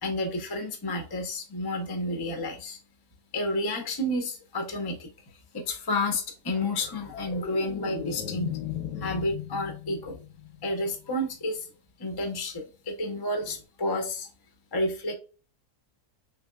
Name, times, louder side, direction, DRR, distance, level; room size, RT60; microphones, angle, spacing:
voice 1, 0.0-2.8 3.3-5.1 5.5-8.5 9.0-10.2 10.6-11.7 12.0-14.3 14.7-15.1, left 1 dB, 30° left, 3 dB, 0.4 m, -30 dB
sound 1, 6.5-11.0 13.4-13.6, left 9 dB, 80° left, 1.3 m, -37 dB
3.5 x 3.3 x 2.2 m, 0.35 s
omnidirectional pair, 1.8 m